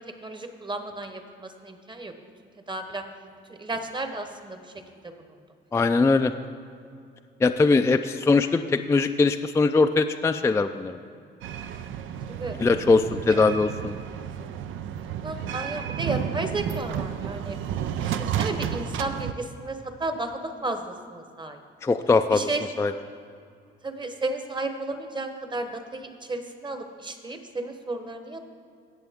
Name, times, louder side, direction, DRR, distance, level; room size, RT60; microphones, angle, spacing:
voice 1, 0.2-2.1 2.7-3.0 3.5-4.6 5.0-5.1 12.3-12.6 13.3-13.4 15.2-17.6 18.0-21.6 22.3-22.6 23.8-28.4, right 2 dB, 25° right, 7 dB, 1.1 m, -33 dB
voice 2, 5.7-6.3 7.4-11.0 12.6-13.9 21.8-22.5 22.8-22.9, left 3 dB, 15° left, 7 dB, 0.3 m, -21 dB
sound 1, 11.4-19.3, right 9 dB, 75° right, 0.5 m, -32 dB
17.0 x 6.8 x 3.6 m, 2.3 s
cardioid pair, 90°, 20 cm